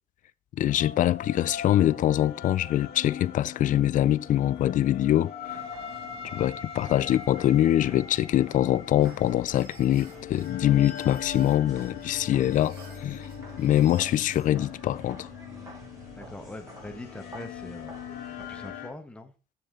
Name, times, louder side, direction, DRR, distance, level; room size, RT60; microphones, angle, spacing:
voice 1, 0.5-5.7 6.3-13.3 13.6-15.3, left 12 dB, 50° left, 0.4 m, -24 dB
sound 1, 0.7-18.9, left 8 dB, 70° left, 1.5 m, -41 dB
sound 2, 5.5-18.7, right 2 dB, 20° right, 3.5 m, -49 dB
sound 3, 9.0-14.5, right 4 dB, 65° right, 2.4 m, -53 dB
voice 2, 16.1-17.9 18.4-19.3, left 1 dB, 5° left, 1.1 m, -42 dB
7.2 x 6.9 x 3.7 m
cardioid pair, 110°, 17 cm